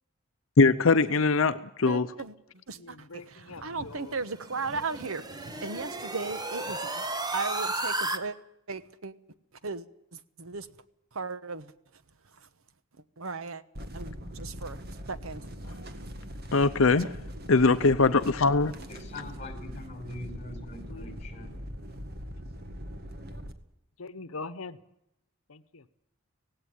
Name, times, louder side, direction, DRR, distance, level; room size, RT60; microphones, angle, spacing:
voice 1, 0.6-2.1 15.6-15.7 16.5-17.2 17.5-18.7, left 3 dB, 70° left, 0.7 m, -22 dB
voice 2, 1.9-2.3 2.7-7.1 7.3-8.4 8.7-9.1 9.6-9.9 10.1-10.7 11.1-11.7 13.2-13.6 13.9-14.8 15.1-15.4 19.2-19.4 19.7-19.9, right 4 dB, 80° right, 1.2 m, -36 dB
voice 3, 2.7-4.1 20.9-21.2 24.0-24.8 25.5-25.8, left 3 dB, 90° left, 1.0 m, -42 dB
sound 1, 4.2-8.2, right 2 dB, 20° right, 1.3 m, -34 dB
sound 2, 13.8-23.5, equal, 50° right, 1.9 m, -41 dB
voice 4, 18.9-21.5, left 2 dB, 35° left, 4.7 m, -43 dB
17.5 x 17.0 x 9.3 m
head